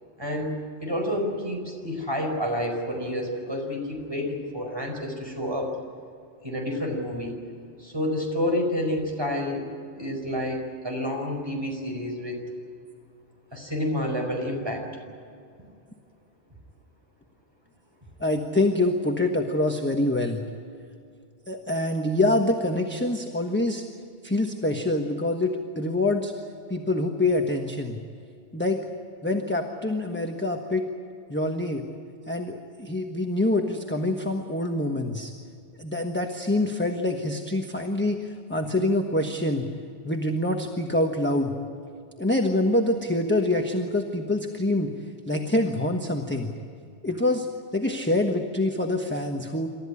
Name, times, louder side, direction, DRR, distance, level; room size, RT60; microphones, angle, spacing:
voice 1, 0.2-5.7 6.4-7.3 7.8-9.7 9.9-12.4 13.5-14.9, left 1 dB, 20° right, 1 dB, 5.0 m, -29 dB
voice 2, 18.2-20.4 21.5-23.8 24.2-26.3 26.7-28.0 28.5-28.8 29.2-30.8 31.3-31.8 32.3-35.3 35.8-39.7 40.0-41.5 42.2-44.9 45.3-46.5 47.0-47.5 47.7-49.7, left 2 dB, 10° left, 3 dB, 1.3 m, -25 dB
27.5 x 14.0 x 9.9 m, 2.4 s
omnidirectional pair, 1.1 m